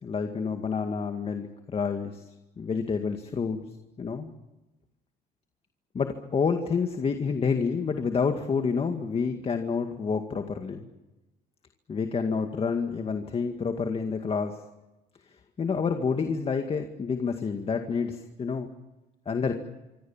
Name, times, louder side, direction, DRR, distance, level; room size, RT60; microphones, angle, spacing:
voice 1, 0.0-2.3 2.6-3.6 4.0-4.3 5.9-10.9 11.9-14.6 15.6-18.7 19.3-19.5, left 5 dB, 35° left, 6 dB, 2.1 m, -28 dB
26.0 x 25.5 x 7.4 m, 1.0 s
cardioid pair, 110°, 17 cm